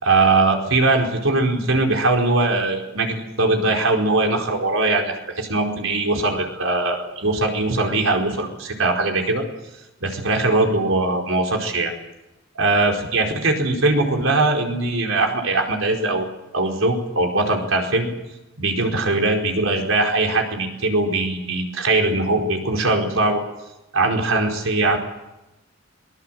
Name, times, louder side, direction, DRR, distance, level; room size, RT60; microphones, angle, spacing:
voice 1, 0.0-9.4 10.0-11.9 12.5-18.1 18.6-23.4 23.9-25.0, right 2 dB, 80° right, 2 dB, 4.6 m, -21 dB
23.0 x 20.5 x 7.6 m, 0.98 s
head